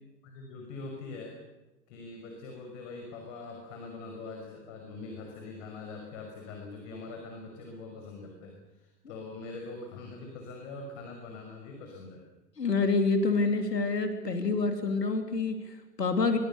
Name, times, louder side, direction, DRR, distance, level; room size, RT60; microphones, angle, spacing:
voice 1, 0.2-1.4 1.9-12.2, left 3 dB, 45° left, 2 dB, 5.8 m, -43 dB
voice 2, 12.6-16.4, left 3 dB, 75° left, 6 dB, 3.1 m, -27 dB
25.5 x 23.5 x 6.9 m, 1.1 s
figure-of-eight pair, 100°, 49 cm